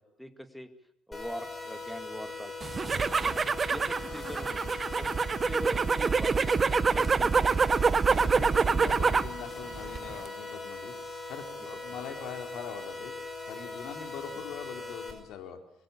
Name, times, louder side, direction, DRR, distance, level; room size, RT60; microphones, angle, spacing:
voice 1, 0.2-0.7 1.1-3.3 3.7-5.1 5.5-6.5 6.9-7.8 8.3-8.7 11.7-11.8, equal, ahead, 8 dB, 2.2 m, -42 dB
sound 1, 1.1-15.1, left 3 dB, 25° left, 5.8 m, -40 dB
sound 2, 2.6-9.4 9.7-10.3, right 5 dB, 30° right, 0.9 m, -26 dB
voice 2, 8.0-13.1 13.5-15.6, left 7 dB, 80° left, 5 dB, 3.9 m, -42 dB
25.0 x 22.0 x 8.6 m, 0.71 s
cardioid pair, 125°, 0 cm